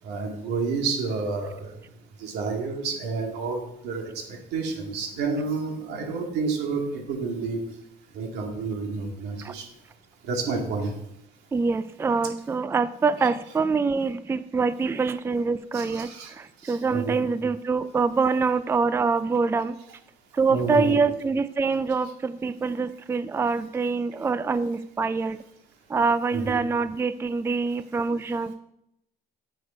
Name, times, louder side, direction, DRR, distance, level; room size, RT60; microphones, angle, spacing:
voice 1, 0.0-1.8 2.2-7.6 8.1-9.7 10.2-11.0 15.7-17.2 20.5-21.0 26.3-26.6, right 4 dB, 90° right, 2 dB, 2.1 m, -30 dB
voice 2, 11.5-19.7 20.3-25.4 25.9-28.5, right 4 dB, 15° right, 13 dB, 0.4 m, -25 dB
9.5 x 6.6 x 4.6 m, 0.80 s
cardioid pair, 110°, 17 cm